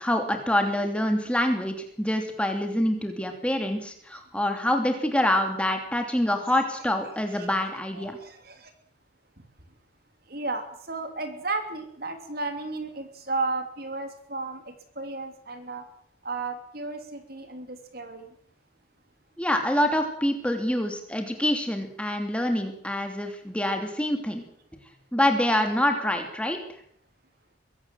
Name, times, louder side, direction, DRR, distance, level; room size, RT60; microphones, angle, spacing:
voice 1, 0.0-8.2 19.4-24.4 25.1-26.6, left 1 dB, 5° left, 4 dB, 3.0 m, -26 dB
voice 2, 7.9-8.7 10.3-15.8 16.2-18.3, right 3 dB, 50° right, 7 dB, 3.2 m, -34 dB
23.0 x 17.0 x 7.8 m, 0.64 s
head